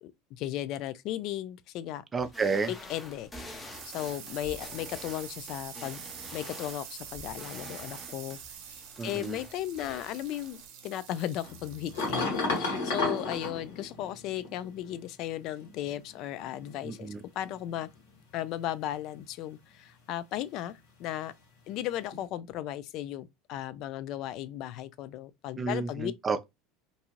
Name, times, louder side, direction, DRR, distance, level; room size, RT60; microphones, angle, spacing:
voice 1, 0.0-2.0 2.7-3.3 3.9-6.0 6.3-8.4 8.6-17.9 18.3-21.3 21.7-26.1, left 13 dB, 55° left, 0.3 m, -36 dB
voice 2, 2.1-2.7 9.0-9.4 16.8-17.2 25.6-26.4, right 4 dB, 25° right, 0.5 m, -31 dB
sound 1, 2.2-10.7, left 1 dB, 15° left, 0.8 m, -47 dB
sound 2, 3.0-14.3, right 8 dB, 65° right, 0.7 m, -47 dB
sound 3, 11.4-14.7 15.6-16.7 17.4-17.9 22.1-22.2, left 3 dB, 80° left, 1.3 m, -33 dB
2.6 x 2.4 x 2.9 m
hypercardioid pair, 90°, 0 cm